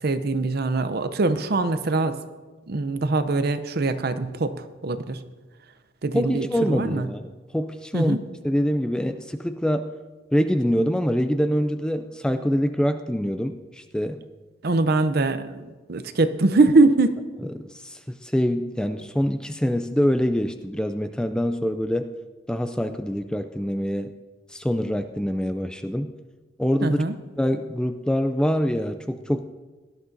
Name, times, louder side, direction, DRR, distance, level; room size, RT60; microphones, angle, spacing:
voice 1, 0.0-2.2 2.7-5.2 6.0-7.1 7.9-8.2 14.6-17.2 26.8-27.2, right 3 dB, 55° right, 11 dB, 0.6 m, -22 dB
voice 2, 6.1-8.2 8.4-9.9 10.3-14.2 17.5-22.1 22.5-24.1 24.5-26.1 26.6-27.0 27.4-29.4, equal, 5° left, 9 dB, 0.3 m, -25 dB
17.5 x 11.5 x 2.7 m, 1.3 s
head